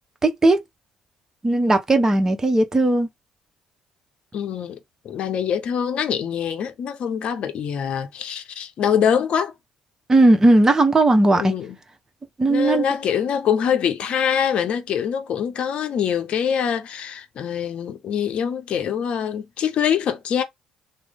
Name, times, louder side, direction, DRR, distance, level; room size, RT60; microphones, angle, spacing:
voice 1, 0.2-0.6 1.4-3.1 10.1-11.5 12.4-12.8, right 2 dB, 25° right, 0.9 m, -17 dB
voice 2, 4.3-4.8 5.0-9.5 11.3-11.8 12.5-20.4, left 8 dB, 55° left, 0.7 m, -24 dB
3.1 x 2.1 x 3.9 m
figure-of-eight pair, 50°, 2 cm